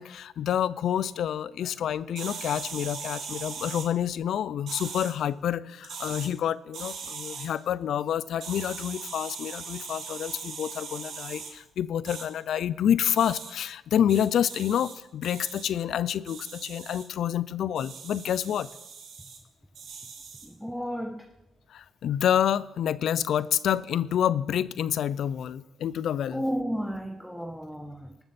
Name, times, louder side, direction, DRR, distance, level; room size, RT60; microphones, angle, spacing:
voice 1, 0.0-18.7 21.7-26.4, left 10 dB, 70° left, 0.4 m, -28 dB
sound 1, 2.1-3.9 4.7-5.1 5.8-6.3 6.7-7.5 8.4-11.5 12.0-12.2 13.2-13.5 14.1-14.9 15.2-15.6 16.3-17.0 17.7-19.4 19.7-20.5, right 5 dB, 70° right, 1.8 m, -40 dB
voice 2, 20.4-21.3 26.3-28.2, equal, ahead, 0.8 m, -33 dB
20.0 x 6.8 x 4.2 m
cardioid pair, 90°, 0 cm